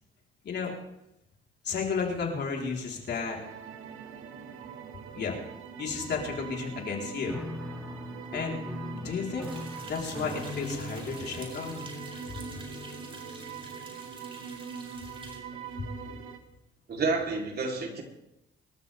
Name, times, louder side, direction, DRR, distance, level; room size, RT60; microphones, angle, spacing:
voice 1, 1.6-3.4 5.1-5.4 5.8-7.4 8.3-8.6 8.9-9.5 9.8-11.9 15.8-16.2, left 5 dB, 60° left, 0 dB, 4.2 m, -33 dB
sound 1, 3.2-16.4, right 7 dB, 90° right, 1.9 m, -43 dB
Piano, 7.3-14.1, left 2 dB, 5° right, 4.0 m, -41 dB
sound 2, 9.4-15.4, right 2 dB, 25° right, 4.6 m, -48 dB
voice 2, 16.9-18.0, right 3 dB, 55° right, 1 dB, 3.8 m, -29 dB
26.0 x 13.5 x 3.6 m, 0.85 s
cardioid pair, 90°, 20 cm